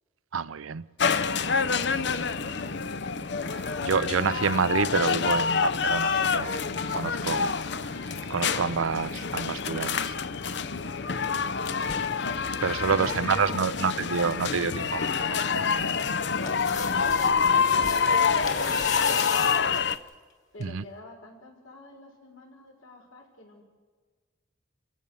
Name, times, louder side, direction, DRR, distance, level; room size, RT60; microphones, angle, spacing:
voice 1, 0.3-0.9 1.9-2.0 3.5-6.7 6.9-8.0 8.3-10.1 12.6-15.7 20.6-20.8, right 5 dB, 80° right, 0.6 m, -28 dB
sound 1, 1.0-20.0, left 5 dB, 55° left, 0.7 m, -27 dB
sound 2, 4.4-4.5 4.8-9.1 9.4-9.5 9.6-9.9 11.2-12.1 12.7-13.2 13.4-13.5 13.9-14.5 14.9-20.1 20.6-20.7, left 6 dB, 35° left, 2.3 m, -39 dB
voice 2, 13.0-13.8 16.5-19.9 20.5-23.6, left 1 dB, 85° left, 5.9 m, -49 dB
29.0 x 15.0 x 7.0 m
head